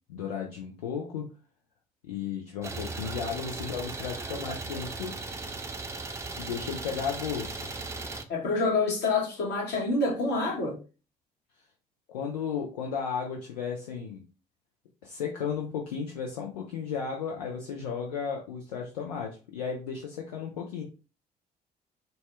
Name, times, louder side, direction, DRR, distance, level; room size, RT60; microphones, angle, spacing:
voice 1, 0.1-1.3 2.0-5.2 6.4-7.6 12.1-14.2 15.0-20.8, left 6 dB, 80° left, 0.6 m, -34 dB
Idling, 2.6-8.2, right 3 dB, 15° right, 0.6 m, -37 dB
voice 2, 8.3-10.8, left 3 dB, 55° left, 1.5 m, -27 dB
4.2 x 2.2 x 3.2 m
figure-of-eight pair, 50°, 20 cm